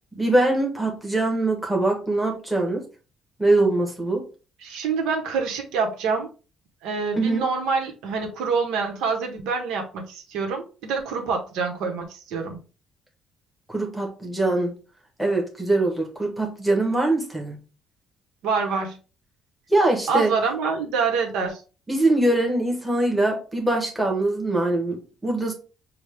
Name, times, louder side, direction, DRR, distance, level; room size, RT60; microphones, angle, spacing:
voice 1, 0.1-2.8 3.4-4.2 7.1-7.4 13.7-14.7 15.2-17.6 19.7-20.3 21.9-25.5, right 2 dB, ahead, 2 dB, 1.0 m, -22 dB
voice 2, 4.6-6.3 6.8-12.6 18.4-19.0 20.1-21.6, right 5 dB, 80° right, 2 dB, 1.1 m, -26 dB
6.1 x 2.3 x 3.4 m, 0.35 s
cardioid pair, 170°, 0 cm